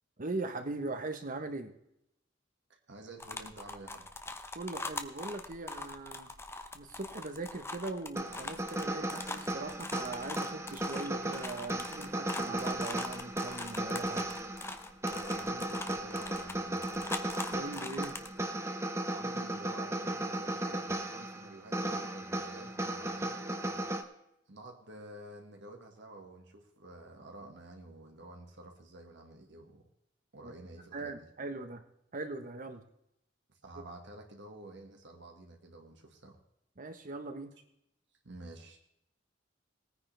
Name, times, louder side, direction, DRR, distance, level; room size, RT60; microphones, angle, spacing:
voice 1, 0.2-1.7 4.5-6.3 6.7-14.3 17.5-18.2 30.4-30.5 30.9-31.8 32.1-32.8 36.8-37.5, right 2 dB, 45° right, 8 dB, 1.2 m, -40 dB
voice 2, 2.7-4.1 15.0-17.1 19.1-23.9 24.5-29.9 30.3-31.3 33.6-36.4 38.2-38.8, right 2 dB, 65° right, 2 dB, 1.9 m, -50 dB
sound 1, 3.2-18.3, left 2 dB, 15° left, 0.8 m, -42 dB
sound 2, 8.2-24.0, right 1 dB, 15° right, 1.0 m, -36 dB
19.5 x 9.6 x 3.4 m, 0.80 s
head